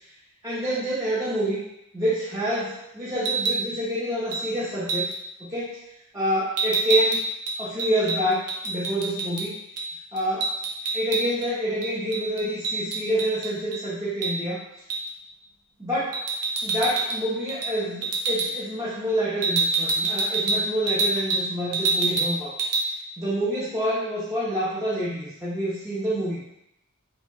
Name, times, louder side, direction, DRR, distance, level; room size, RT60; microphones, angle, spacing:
voice 1, 0.4-1.6 1.9-5.1 5.4-5.8 6.1-7.2 7.6-9.5 10.1-10.5 10.9-14.6 15.8-16.2 16.6-22.6 23.2-26.4, equal, 15° right, -11 dB, 0.7 m, -27 dB
sound 1, 3.1-3.6 4.3-4.5 4.9-5.2 6.6-9.5 9.8-9.9 10.2-11.5 11.8-13.8 14.2-14.4 14.9-15.1 16.1-17.2 17.5-17.7 18.0-18.5 19.4-21.5 21.7-22.3 22.6-22.8, right 3 dB, 85° right, 0.5 m, -26 dB
3.1 x 2.2 x 3.3 m, 0.81 s
head